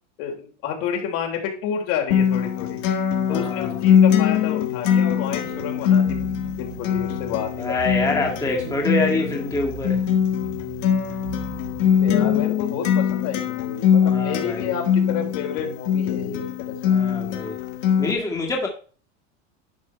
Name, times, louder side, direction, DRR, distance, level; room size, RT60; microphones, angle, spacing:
voice 1, 0.2-2.8 3.3-6.2 6.6-8.0 11.7-16.9, left 8 dB, 60° left, 3.3 m, -30 dB
Acoustic guitar, 2.1-18.1, left 8 dB, 90° left, 2.1 m, -22 dB
voice 2, 3.3-3.8 7.6-10.0 14.0-14.7 16.9-17.6 18.0-18.7, left 2 dB, 10° left, 1.9 m, -26 dB
sound 1, 5.4-12.5, right 6 dB, 85° right, 3.7 m, -37 dB
10.5 x 5.6 x 4.4 m
supercardioid pair, 130°, 36 cm